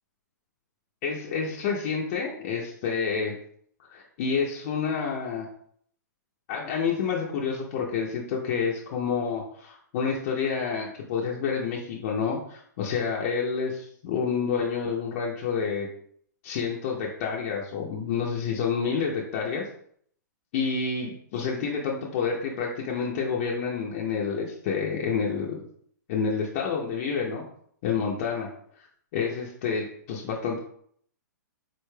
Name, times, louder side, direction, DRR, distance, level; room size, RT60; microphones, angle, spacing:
voice 1, 1.0-3.3 3.9-5.5 6.5-13.7 14.0-15.9 16.4-19.6 20.5-25.6 26.1-27.4 27.8-28.5 28.8-28.9 29.1-30.6, left 6 dB, 45° left, -3 dB, 0.6 m, -28 dB
4.1 x 3.2 x 2.2 m, 0.63 s
hypercardioid pair, 130°, 10 cm